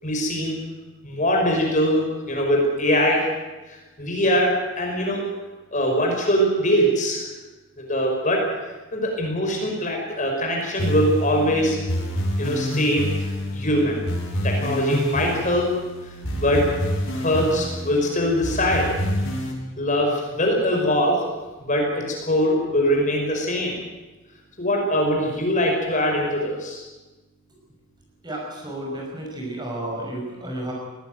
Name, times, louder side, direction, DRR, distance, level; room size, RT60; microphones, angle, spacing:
voice 1, 0.0-0.5 1.0-3.3 3.7-5.2 5.7-7.2 7.8-8.5 8.9-11.8 12.4-14.0 14.4-15.7 16.4-16.7 17.1-18.9 19.8-21.2 21.6-23.8 24.6-26.8, equal, 35° left, 0 dB, 5.6 m, -22 dB
sound 1, 10.8-19.5, equal, 65° left, 7.0 m, -27 dB
voice 2, 28.2-30.7, right 1 dB, 20° right, -1 dB, 5.8 m, -32 dB
20.5 x 17.5 x 9.4 m, 1.2 s
head